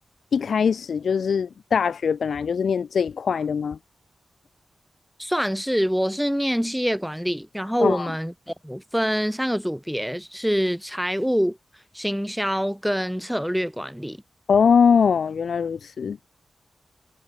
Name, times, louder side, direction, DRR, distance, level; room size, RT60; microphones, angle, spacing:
voice 1, 0.3-3.8 7.8-8.1 14.5-16.2, left 6 dB, 85° left, 0.9 m, -22 dB
voice 2, 5.2-11.6 11.9-14.2, equal, ahead, 3.2 m, -25 dB
wide cardioid pair, 115°, 0 cm